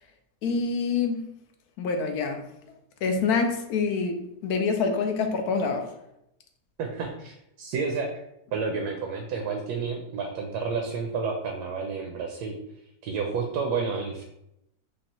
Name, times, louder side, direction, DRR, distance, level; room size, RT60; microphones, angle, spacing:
voice 1, 0.4-1.3 1.8-2.4 3.0-5.9, left 4 dB, 75° left, 4 dB, 1.1 m, -26 dB
voice 2, 6.8-8.2 8.5-12.6 13.0-14.2, right 5 dB, 80° right, 2 dB, 1.1 m, -30 dB
5.1 x 2.4 x 3.0 m, 0.81 s
omnidirectional pair, 1.7 m